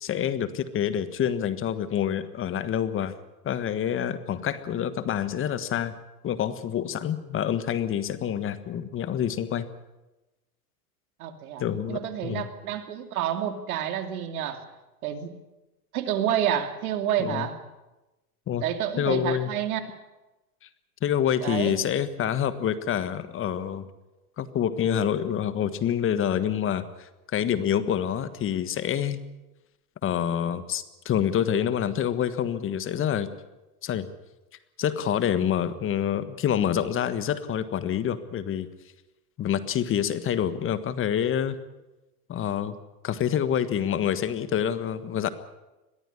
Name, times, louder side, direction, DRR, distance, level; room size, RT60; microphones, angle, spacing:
voice 1, 0.0-3.1 3.4-5.9 6.2-9.7 11.6-12.5 17.2-17.5 18.5-18.6 19.0-19.5 21.0-23.9 24.4-29.2 30.0-33.3 33.8-34.1 34.8-38.7 39.4-41.6 42.3-42.8 43.0-45.3, left 9 dB, 25° left, 13 dB, 1.5 m, -27 dB
voice 2, 11.2-14.7 15.0-15.3 15.9-17.6 18.6-20.0 21.4-21.8, right 10 dB, 70° right, 8 dB, 2.8 m, -29 dB
22.0 x 14.0 x 9.9 m, 1.1 s
hypercardioid pair, 120°, 45 cm